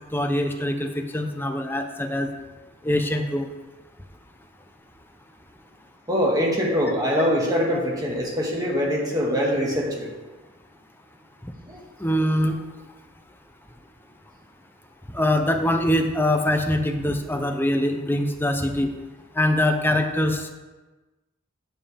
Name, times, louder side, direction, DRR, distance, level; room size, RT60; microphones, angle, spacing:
voice 1, 0.1-2.3 2.8-3.5 12.0-12.6 15.1-18.9 19.4-20.5, left 1 dB, 10° left, 5 dB, 0.7 m, -23 dB
voice 2, 6.1-10.1 11.7-11.8, equal, 20° right, -2 dB, 1.7 m, -23 dB
9.3 x 7.2 x 3.5 m, 1.2 s
head